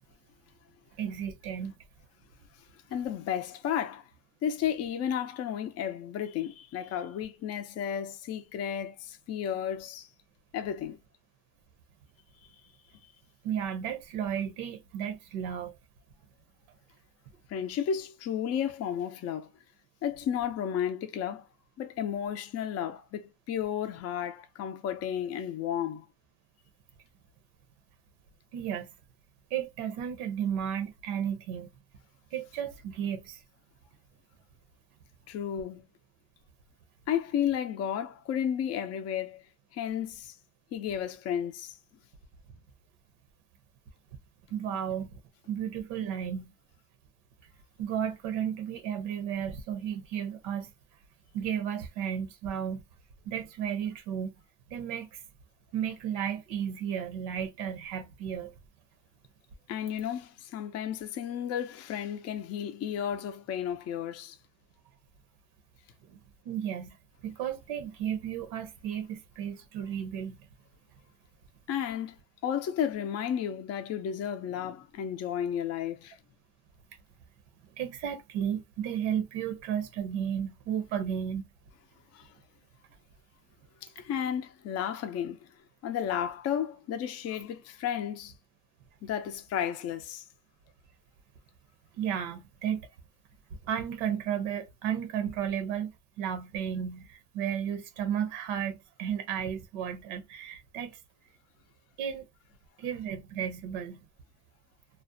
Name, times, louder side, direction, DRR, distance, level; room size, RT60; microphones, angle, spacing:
voice 1, 1.0-1.7 13.4-15.7 28.5-28.9 29.5-31.7 32.3-33.4 44.5-45.2 45.5-46.5 47.8-50.7 51.3-52.8 53.3-54.3 54.7-55.2 55.7-58.5 66.1-66.2 66.4-67.0 67.2-70.4 77.8-81.5 91.9-92.9 93.6-95.9 96.2-101.0 102.0-102.3 102.8-104.0, right 9 dB, 80° right, 0.8 m, -33 dB
voice 2, 2.9-4.0 4.4-10.1 10.5-11.0 17.5-19.5 20.0-21.4 21.8-26.1 35.3-35.8 37.1-39.4 39.7-40.3 40.7-41.8 59.7-64.4 71.7-72.2 72.4-76.2 82.1-82.3 83.8-85.5 85.8-88.3 89.0-90.2, left 9 dB, 35° left, 0.4 m, -33 dB
2.5 x 2.0 x 2.5 m
cardioid pair, 120°, 46 cm